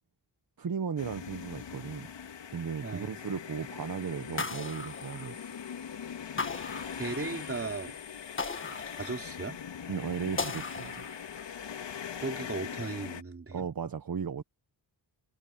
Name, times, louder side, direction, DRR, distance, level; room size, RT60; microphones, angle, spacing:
voice 1, 0.6-2.1 2.5-5.5 9.9-11.1 13.5-14.4, right 6 dB, 50° right, 1.5 m, -36 dB
sound 1, 1.0-13.2, left 8 dB, 75° left, 3.3 m, -41 dB
voice 2, 2.8-3.1 6.6-8.0 8.9-9.6 12.2-13.7, right 4 dB, 30° right, 3.4 m, -37 dB
sound 2, 4.4-5.7 6.4-7.6 8.4-9.6 10.4-11.5, left 4 dB, 30° left, 1.6 m, -38 dB
cardioid pair, 75°, 43 cm